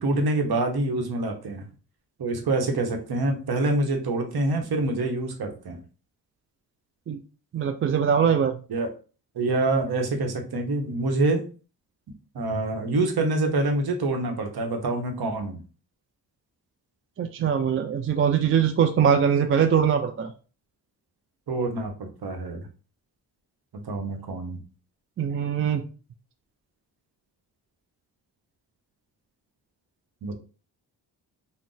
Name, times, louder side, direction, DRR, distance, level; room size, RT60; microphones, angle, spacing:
voice 1, 0.0-1.6 2.2-5.8 8.7-8.9 9.3-11.4 12.3-15.6 21.5-22.7 23.8-24.6 30.2-30.3, right 2 dB, 55° right, 3 dB, 1.0 m, -26 dB
voice 2, 7.5-8.6 17.2-20.3 25.2-25.8, right 7 dB, 30° right, 6 dB, 0.4 m, -22 dB
2.4 x 2.2 x 3.8 m, 0.36 s
supercardioid pair, 50°, 45 cm